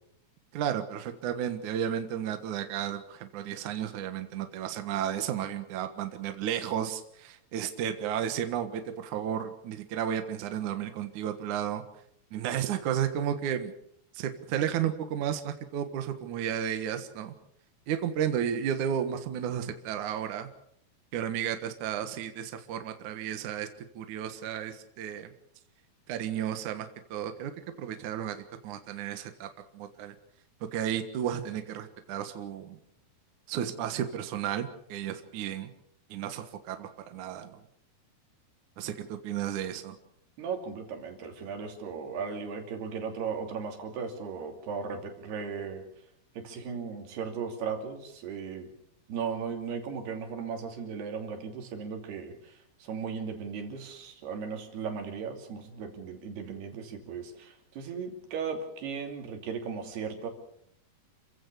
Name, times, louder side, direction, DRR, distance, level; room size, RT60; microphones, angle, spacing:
voice 1, 0.5-11.8 12.3-13.7 14.1-17.3 17.9-20.5 21.1-23.7 24.0-25.3 26.1-27.5 27.8-28.4 28.6-29.5 29.7-30.1 30.7-32.8 33.5-35.7 36.1-37.6 38.8-40.0, right 9 dB, 60° right, 8 dB, 2.6 m, -33 dB
voice 2, 40.4-45.8 46.4-48.7 49.1-60.3, right 6 dB, 80° right, 5 dB, 4.8 m, -36 dB
29.0 x 15.5 x 6.9 m, 0.72 s
omnidirectional pair, 4.6 m